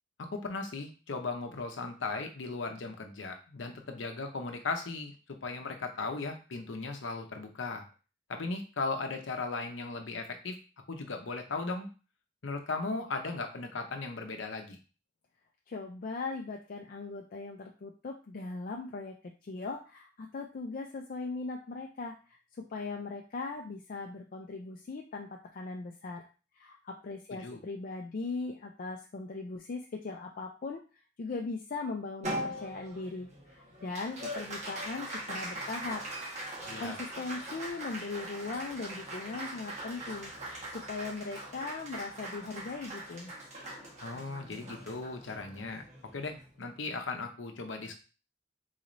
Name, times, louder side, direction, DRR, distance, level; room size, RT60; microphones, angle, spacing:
voice 1, 0.2-7.9 8.3-10.6 10.9-11.9 12.4-14.8 27.3-27.6 36.7-37.0 44.0-45.8 46.1-48.0, left 3 dB, 85° left, 5 dB, 0.7 m, -37 dB
voice 2, 15.7-26.2 26.5-30.8 31.2-36.0 36.8-40.3 40.7-43.3, left 3 dB, 50° left, 1 dB, 0.4 m, -39 dB
Applause, 32.2-46.9, right 1 dB, 40° right, 1.2 m, -41 dB
3.9 x 3.1 x 2.5 m, 0.34 s
head